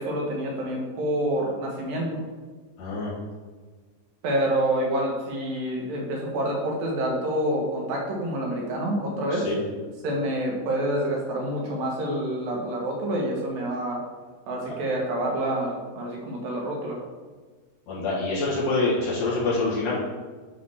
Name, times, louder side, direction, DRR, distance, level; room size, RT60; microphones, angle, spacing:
voice 1, 0.0-2.1 4.2-9.5 10.0-14.0 14.5-17.0, right 1 dB, 85° right, -1 dB, 3.0 m, -27 dB
voice 2, 2.8-3.1 9.3-9.6 17.9-20.0, left 3 dB, 55° left, -7 dB, 2.6 m, -26 dB
9.9 x 3.3 x 4.2 m, 1.4 s
omnidirectional pair, 3.9 m